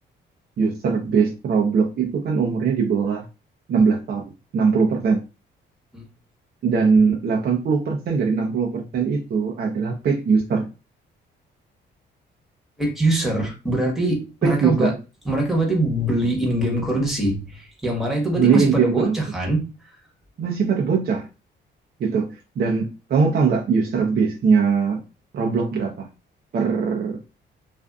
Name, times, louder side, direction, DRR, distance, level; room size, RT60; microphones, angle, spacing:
voice 1, 0.6-3.2 3.7-4.2 4.5-5.2 6.6-10.7 14.4-15.0 18.4-19.2 20.4-21.3 22.0-25.0 25.3-26.1 26.5-27.2, right 5 dB, 50° right, 0 dB, 0.6 m, -21 dB
voice 2, 12.8-14.9 15.2-19.6, right 1 dB, ahead, -1 dB, 1.1 m, -23 dB
2.5 x 2.4 x 2.3 m, 0.30 s
cardioid pair, 90°, 20 cm